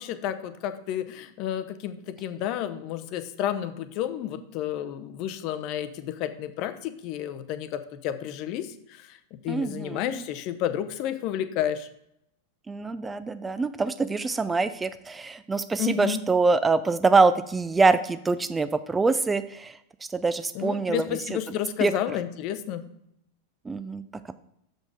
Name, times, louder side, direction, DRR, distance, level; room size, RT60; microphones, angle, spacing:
voice 1, 0.0-11.9 15.8-16.2 20.5-22.8, left 11 dB, 40° left, 11 dB, 0.6 m, -31 dB
voice 2, 9.5-10.2 12.7-19.8 20.1-21.4 21.8-21.9 23.7-24.0, right 3 dB, 15° right, 13 dB, 0.3 m, -24 dB
6.4 x 5.2 x 4.7 m, 0.76 s
figure-of-eight pair, 90°, 0 cm